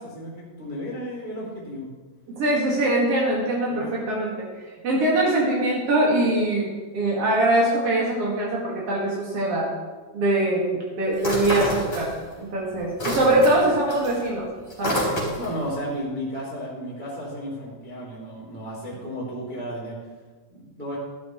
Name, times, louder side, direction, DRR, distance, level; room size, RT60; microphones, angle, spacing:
voice 1, 0.0-1.9 3.7-4.0 15.3-20.0 20.5-21.0, equal, 15° right, -6 dB, 1.7 m, -33 dB
voice 2, 2.3-4.3 4.8-9.7 10.1-12.1 12.4-14.5 14.8-15.0, right 1 dB, 60° right, -5 dB, 1.6 m, -22 dB
sound 1, 11.2-12.4 12.7-15.6, left 1 dB, 15° left, 3.9 m, -28 dB
14.0 x 13.0 x 3.2 m, 1.4 s
omnidirectional pair, 5.9 m